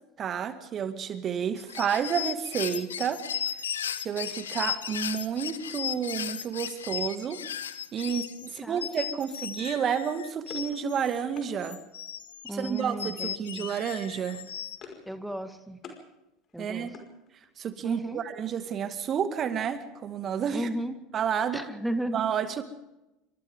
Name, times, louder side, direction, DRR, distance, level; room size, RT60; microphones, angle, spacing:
voice 1, 0.2-3.2 4.0-7.4 7.9-11.8 12.5-14.4 16.6-16.9 17.6-20.7 21.1-21.6 22.1-22.6, right 7 dB, 35° right, 10 dB, 2.1 m, -30 dB
sound 1, 1.6-11.2 11.6-14.8, left 9 dB, 75° left, 1.3 m, -36 dB
voice 2, 8.4-9.3 12.4-13.7 15.1-15.8 16.5-16.9 17.8-18.2 20.5-21.0 21.5-22.2, right 1 dB, ahead, 8 dB, 1.9 m, -35 dB
sound 2, 10.1-11.5 12.8-13.2 13.5-13.8 14.1-15.1 15.4-16.0 16.4-17.7, left 5 dB, 40° left, 5.2 m, -50 dB
28.0 x 25.0 x 3.7 m, 0.94 s
figure-of-eight pair, 75°, 0 cm